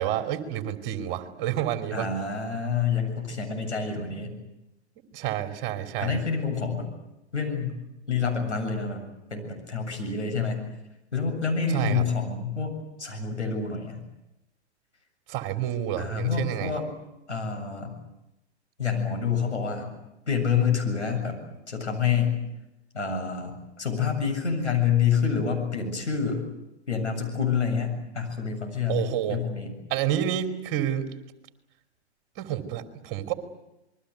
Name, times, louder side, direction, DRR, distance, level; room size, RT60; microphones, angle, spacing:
voice 1, 0.0-2.1 5.1-6.2 11.5-12.0 15.3-16.7 28.9-29.4 29.9-31.1 32.4-33.3, right 11 dB, 35° right, 6 dB, 3.1 m, -29 dB
voice 2, 1.9-4.3 6.0-6.9 7.3-7.7 8.1-9.0 9.3-10.6 11.1-14.0 16.0-16.9 17.3-18.0 18.8-19.9 20.3-21.4 21.7-22.4 22.9-26.4 26.9-29.7, left 6 dB, 85° left, 3 dB, 7.7 m, -27 dB
27.0 x 22.0 x 8.2 m, 0.91 s
figure-of-eight pair, 115°, 34 cm